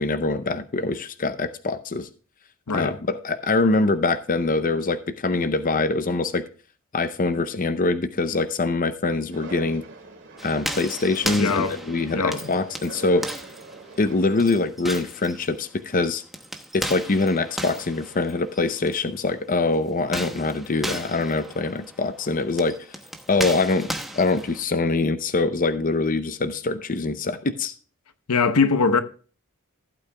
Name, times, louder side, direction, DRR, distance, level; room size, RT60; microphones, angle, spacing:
voice 1, 0.0-2.1 2.7-6.4 6.9-9.8 10.4-13.3 14.0-16.2 16.7-22.8 23.3-23.9 24.1-27.7, left 3 dB, 40° left, 0.6 m, -24 dB
sound 1, 9.3-14.5, right 3 dB, 55° right, 2.4 m, -43 dB
sound 2, 10.4-19.0 20.0-24.6, equal, ahead, 0.9 m, -35 dB
voice 2, 11.4-11.8 12.1-12.5 28.3-29.0, left 4 dB, 85° left, 0.9 m, -21 dB
15.5 x 8.7 x 2.2 m
head